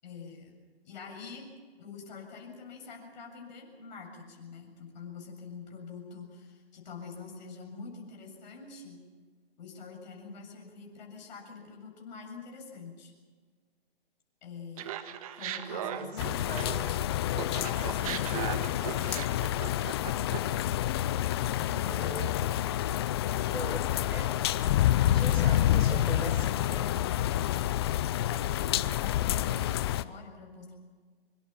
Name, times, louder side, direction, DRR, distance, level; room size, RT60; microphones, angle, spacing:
voice 1, 0.0-0.6 0.8-1.5 1.8-9.0 9.6-13.1 14.4-15.0 15.3-16.6 17.5-18.5 21.4-22.4 27.5-30.7, left 5 dB, 45° left, 1 dB, 7.6 m, -46 dB
Laughter, 14.8-17.0 17.3-20.6, right 11 dB, 35° right, 1.7 m, -38 dB
voice 2, 15.8-16.7 17.9-18.2 21.5-22.3 23.5-24.7 25.1-26.9, right 2 dB, 80° right, 4 dB, 6.4 m, -41 dB
sound 1, 16.2-30.0, left 12 dB, 25° left, 0.6 m, -28 dB
25.5 x 25.0 x 5.9 m, 1.5 s
figure-of-eight pair, 130°, 30 cm